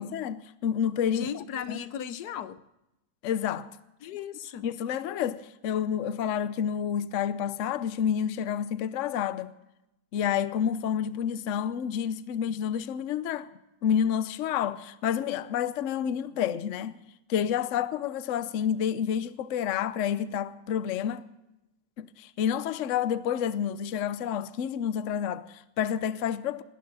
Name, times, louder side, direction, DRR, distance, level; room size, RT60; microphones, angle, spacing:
voice 1, 0.0-1.4 1.7-1.8 3.2-3.7 4.6-9.5 10.1-13.5 13.8-17.0 17.3-21.2 22.0-26.6, left 8 dB, 60° left, 1.0 m, -29 dB
voice 2, 1.1-2.6 4.0-4.7, left 8 dB, 85° left, 1.3 m, -37 dB
19.0 x 17.5 x 4.1 m
omnidirectional pair, 1.7 m